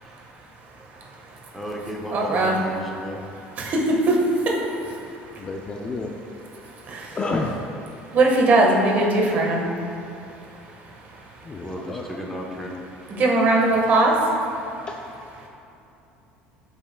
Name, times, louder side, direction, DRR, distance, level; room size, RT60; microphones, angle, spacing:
voice 1, 1.5-3.3 11.6-12.8, equal, 5° left, -2 dB, 1.0 m, -34 dB
voice 2, 2.1-2.6 3.6-3.8 4.1-4.2 6.9-7.0 8.1-9.7 13.2-14.1, right 2 dB, 45° right, -1 dB, 1.4 m, -19 dB
voice 3, 5.4-6.2 7.1-7.6 11.4-12.1 14.9-15.0, left 3 dB, 25° left, 2 dB, 0.5 m, -29 dB
12.5 x 5.5 x 2.3 m, 2.7 s
cardioid pair, 130°, 4 cm